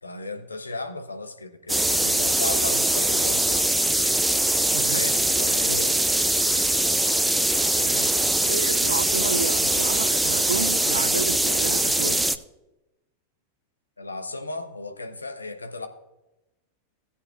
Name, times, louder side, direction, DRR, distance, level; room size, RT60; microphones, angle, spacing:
voice 1, 0.0-3.7 4.8-6.0 6.5-6.6 14.0-15.9, left 2 dB, 80° left, 1.0 m, -35 dB
sound 1, 1.7-12.4, right 1 dB, 5° right, 0.5 m, -22 dB
voice 2, 4.7-5.2 5.5-5.7 7.8-12.3, right 5 dB, 70° right, 0.4 m, -31 dB
18.0 x 8.4 x 2.5 m
figure-of-eight pair, 90°, 0 cm